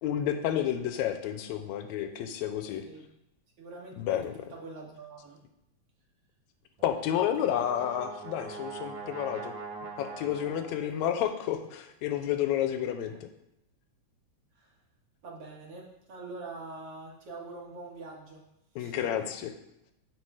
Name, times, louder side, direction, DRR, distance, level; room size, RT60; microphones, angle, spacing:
voice 1, 0.0-2.8 4.0-4.3 6.8-9.5 10.0-13.1 18.8-19.5, left 10 dB, 80° left, 8 dB, 1.9 m, -30 dB
voice 2, 3.6-5.4 13.1-13.2 14.6-14.7 15.2-18.4 18.8-19.3, right 3 dB, 55° right, -2 dB, 2.3 m, -44 dB
Brass instrument, 6.8-11.1, right 4 dB, 80° right, 2.6 m, -42 dB
9.7 x 3.8 x 4.8 m, 0.84 s
omnidirectional pair, 3.4 m